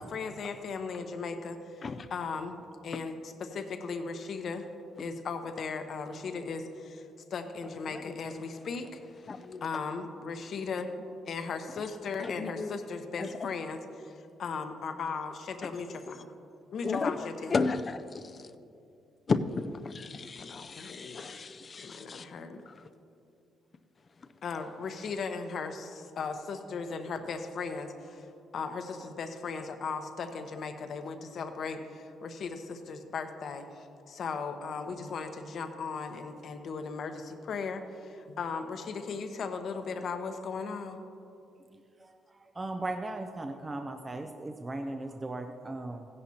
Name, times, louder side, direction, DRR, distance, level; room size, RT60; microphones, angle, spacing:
voice 1, 0.0-1.8 2.1-4.7 5.0-9.0 9.6-10.9 11.3-16.3 16.7-17.5 20.4-21.4 21.8-22.7 24.4-28.3 28.5-41.0, left 5 dB, 60° left, 7 dB, 0.9 m, -37 dB
voice 2, 7.8-8.2 9.3-9.7 12.2-12.7 13.2-13.5 16.1-16.2 16.8-17.1 17.5-18.5 19.3-22.3 22.7-22.8, left 4 dB, 40° left, 10 dB, 0.5 m, -34 dB
voice 3, 42.0-46.1, right 2 dB, 25° right, 5 dB, 0.6 m, -37 dB
15.5 x 11.0 x 2.8 m, 2.6 s
cardioid pair, 90°, 0 cm